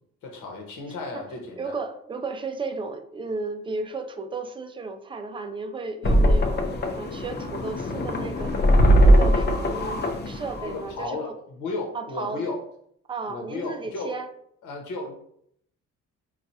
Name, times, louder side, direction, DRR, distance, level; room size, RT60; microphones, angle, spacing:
voice 1, 0.2-1.8 10.6-11.3 11.6-12.6 13.3-14.2 14.6-15.2, left 3 dB, 80° left, 1 dB, 1.0 m, -33 dB
voice 2, 1.5-8.5 8.9-11.2 11.9-12.4 13.1-14.3, right 3 dB, 15° right, 7 dB, 0.4 m, -34 dB
sound 1, 6.0-11.0, equal, 35° left, 0.6 m, -20 dB
4.3 x 2.4 x 2.7 m, 0.69 s
cardioid pair, 90°, 30 cm